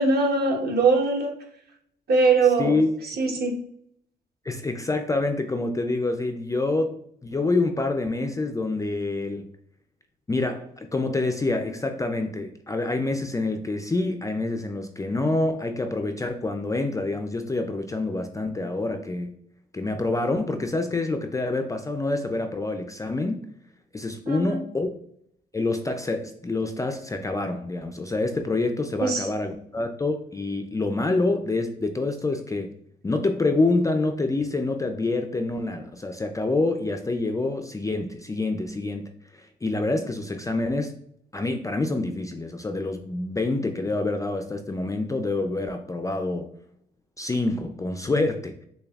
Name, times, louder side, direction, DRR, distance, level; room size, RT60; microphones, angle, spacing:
voice 1, 0.0-1.3 2.1-2.8 3.1-3.6 24.3-24.6 29.0-29.3, right 3 dB, 55° right, 0 dB, 1.2 m, -21 dB
voice 2, 2.6-2.9 4.5-9.5 10.3-19.4 19.7-23.5 23.9-24.9 25.5-32.7 33.0-40.9 41.3-46.5 47.2-48.6, left 2 dB, 15° left, 6 dB, 0.4 m, -27 dB
6.5 x 2.3 x 2.3 m, 0.68 s
cardioid pair, 90°, 20 cm